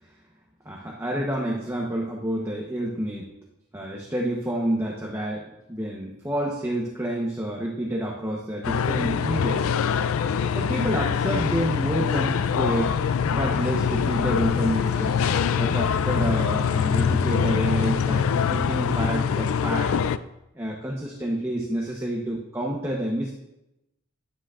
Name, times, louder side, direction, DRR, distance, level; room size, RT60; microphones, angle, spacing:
voice 1, 0.6-3.3 3.7-9.7 10.5-13.0 13.3-15.3 15.6-19.9 20.5-23.3, right 1 dB, 15° right, -2 dB, 0.9 m, -29 dB
sound 1, 8.6-20.2, left 7 dB, 80° left, 0.4 m, -24 dB
sound 2, 10.9-16.6, right 1 dB, 80° right, 1.8 m, -50 dB
9.9 x 9.2 x 2.5 m, 0.89 s
head